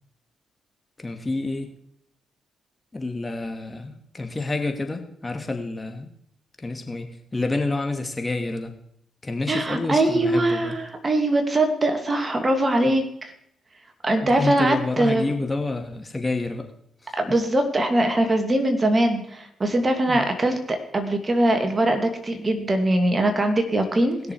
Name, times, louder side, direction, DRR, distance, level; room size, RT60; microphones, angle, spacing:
voice 1, 1.0-1.7 2.9-6.1 6.6-8.7 9.2-10.7 14.2-16.7 17.0-17.1 20.1-20.3, left 2 dB, 25° left, 5 dB, 2.5 m, -28 dB
voice 2, 9.5-13.3 14.0-15.3 17.2-24.2, right 1 dB, 35° right, 5 dB, 2.6 m, -22 dB
20.0 x 6.7 x 4.9 m, 0.70 s
hypercardioid pair, 45°, 0 cm